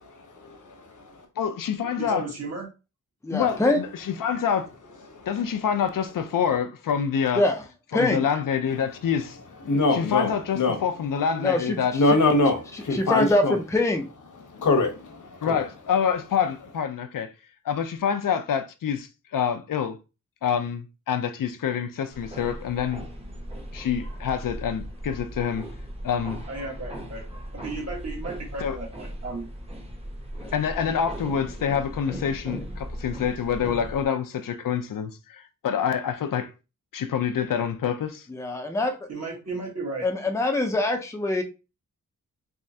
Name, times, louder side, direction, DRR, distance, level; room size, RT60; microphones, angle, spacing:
voice 1, 0.3-1.3 5.1-5.4 9.6-10.8 11.9-13.6 14.4-15.6, left 2 dB, 70° left, 1.0 m, -24 dB
voice 2, 1.4-2.3 3.3-4.7 5.3-7.4 8.0-9.4 9.9-12.0 15.4-17.3 17.6-20.0 20.4-23.0 23.7-25.7 26.0-26.4 28.6-28.8 30.5-36.5 36.9-38.2, left 7 dB, 85° left, 0.6 m, -26 dB
voice 3, 2.0-2.7 26.5-29.5 39.1-40.1, right 3 dB, 50° right, 1.4 m, -35 dB
voice 4, 3.2-3.8 7.4-7.6 7.9-8.3 11.4-11.8 12.9-14.1 30.4-30.5 38.3-39.0 40.0-41.4, left 2 dB, 10° left, 0.4 m, -24 dB
sound 1, 22.1-34.1, equal, 20° right, 0.8 m, -38 dB
3.5 x 3.1 x 2.7 m
wide cardioid pair, 160°, 32 cm